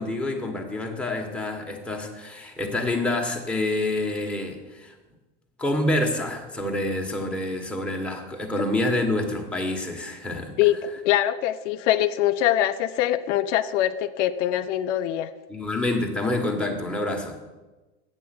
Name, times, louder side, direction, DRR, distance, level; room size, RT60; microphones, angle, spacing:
voice 1, 0.0-4.9 5.6-10.5 15.5-17.4, left 1 dB, 5° left, 0 dB, 1.6 m, -27 dB
voice 2, 10.6-15.3, left 12 dB, 80° left, 11 dB, 0.6 m, -23 dB
8.0 x 7.4 x 6.1 m, 1.2 s
hypercardioid pair, 105°, 36 cm